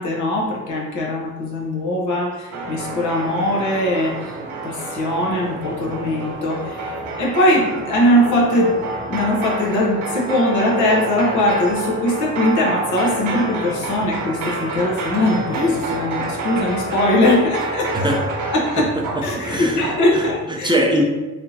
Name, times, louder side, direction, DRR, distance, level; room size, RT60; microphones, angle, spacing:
voice 1, 0.0-4.4 4.6-18.1 18.5-18.9 19.2-20.7, left 1 dB, 75° left, -2 dB, 1.0 m, -20 dB
sound 1, 2.5-20.3, right 2 dB, 90° right, 0.7 m, -28 dB
voice 2, 18.8-21.0, equal, 15° right, 0 dB, 0.5 m, -22 dB
3.5 x 2.8 x 2.7 m, 1.2 s
cardioid pair, 90°, 30 cm